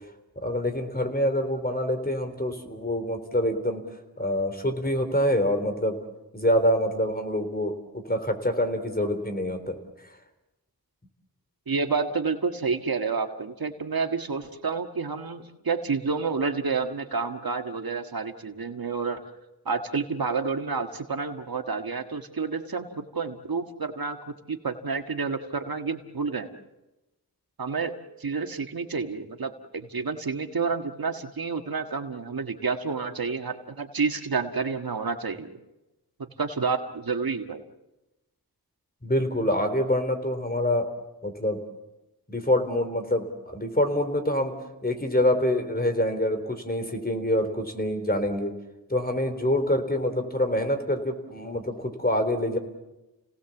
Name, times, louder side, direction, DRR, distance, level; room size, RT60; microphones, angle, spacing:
voice 1, 0.4-3.8 4.2-6.0 6.3-9.8 39.0-40.9 41.2-41.6 42.3-44.5 44.8-48.5 48.9-52.6, left 1 dB, 25° left, 7 dB, 3.6 m, -26 dB
voice 2, 11.7-19.2 19.6-22.9 23.1-24.2 24.5-26.5 27.6-35.5 36.2-37.6, right 4 dB, 65° right, 6 dB, 1.7 m, -29 dB
30.0 x 18.5 x 7.2 m, 0.98 s
cardioid pair, 50°, 38 cm